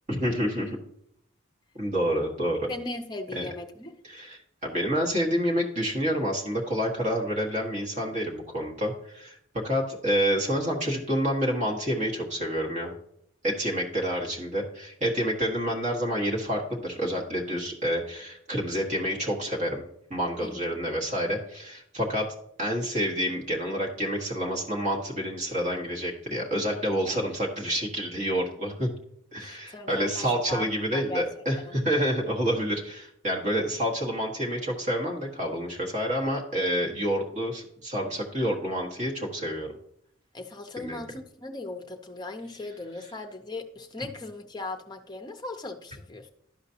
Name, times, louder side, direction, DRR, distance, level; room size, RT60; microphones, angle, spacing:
voice 1, 0.1-0.8 1.7-2.7 3.3-3.5 4.0-9.4 9.6-12.9 13.4-19.8 20.1-22.2 22.6-28.9 29.3-39.8 40.8-41.0, equal, 35° right, -1 dB, 1.5 m, -28 dB
voice 2, 2.7-4.0 20.4-20.7 29.4-31.3 31.7-31.8 40.3-46.3, left 2 dB, 20° left, 5 dB, 0.6 m, -38 dB
12.0 x 5.0 x 2.8 m, 0.71 s
head